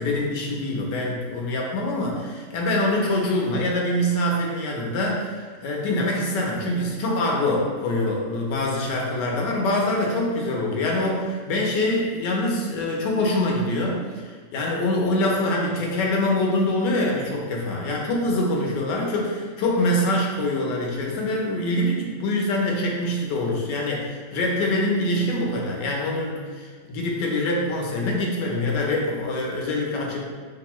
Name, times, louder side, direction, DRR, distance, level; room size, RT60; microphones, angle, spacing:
voice 1, 0.0-30.3, left 1 dB, 75° left, -2 dB, 1.4 m, -24 dB
5.3 x 2.6 x 3.0 m, 1.5 s
omnidirectional pair, 1.9 m